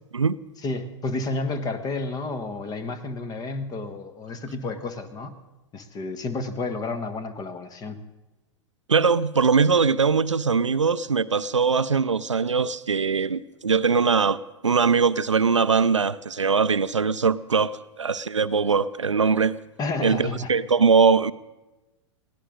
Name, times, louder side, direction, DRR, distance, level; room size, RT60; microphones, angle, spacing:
voice 1, 0.6-5.4 5.7-8.0 19.8-20.5, left 3 dB, 25° left, 1.4 m, -31 dB
voice 2, 8.9-19.6 20.0-21.3, right 5 dB, 85° right, 0.5 m, -21 dB
21.5 x 17.0 x 3.8 m
figure-of-eight pair, 95°, 15 cm